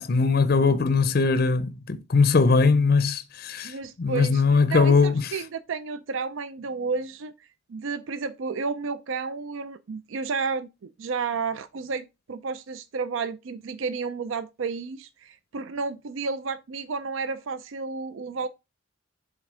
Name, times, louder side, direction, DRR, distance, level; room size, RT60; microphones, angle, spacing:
voice 1, 0.0-5.3, left 4 dB, 45° left, 0.5 m, -21 dB
voice 2, 3.6-4.4 4.7-7.3 7.7-18.5, right 4 dB, 70° right, 0.4 m, -31 dB
7.4 x 3.5 x 4.8 m
head